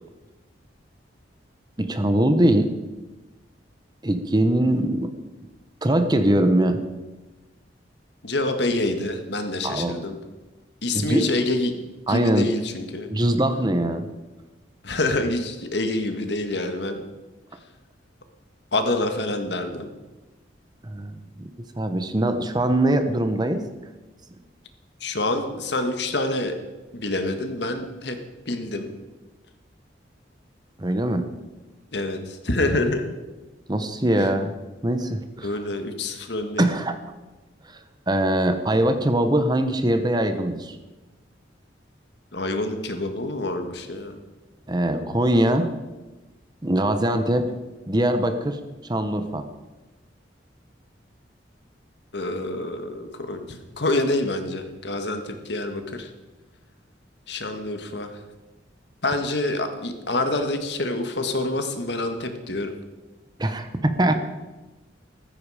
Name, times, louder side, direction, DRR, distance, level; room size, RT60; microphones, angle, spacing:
voice 1, 1.8-2.7 4.0-5.1 5.8-6.8 9.6-9.9 10.9-11.3 12.1-12.5 13.1-14.1 20.8-21.5 21.8-23.6 30.8-31.3 33.7-34.5 34.8-35.6 36.6-37.0 37.7-37.8 38.1-40.8 44.7-45.8 46.6-47.5 47.9-49.5 63.4-64.2, right 1 dB, 25° right, 8 dB, 1.0 m, -22 dB
voice 2, 8.2-10.2 10.8-13.1 14.8-17.0 18.7-19.9 25.0-26.5 26.9-28.2 28.5-28.9 31.9-33.0 35.4-36.7 42.3-44.1 52.1-56.1 57.3-58.1 59.0-62.7, left 2 dB, 65° left, 7 dB, 1.7 m, -27 dB
14.5 x 14.0 x 5.0 m, 1.2 s
head